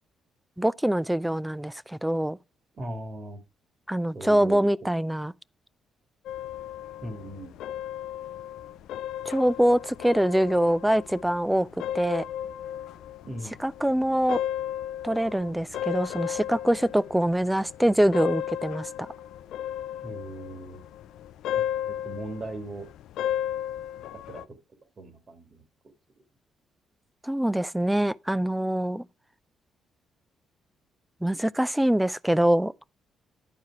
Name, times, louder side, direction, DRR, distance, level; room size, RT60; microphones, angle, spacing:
voice 1, 0.6-2.4 3.9-5.3 9.3-11.7 11.9-12.3 13.6-14.4 15.0-19.1 27.2-29.0 31.2-32.7, right 1 dB, 5° right, 0.3 m, -24 dB
voice 2, 2.8-3.4 4.1-4.9 7.0-7.6 13.2-13.6 20.0-20.8 21.8-22.9 24.1-24.4 25.0-25.6, right 1 dB, 40° right, 2.2 m, -38 dB
sound 1, 6.3-24.5, left 11 dB, 85° left, 0.4 m, -35 dB
10.5 x 4.7 x 4.7 m
cardioid pair, 90°, 0 cm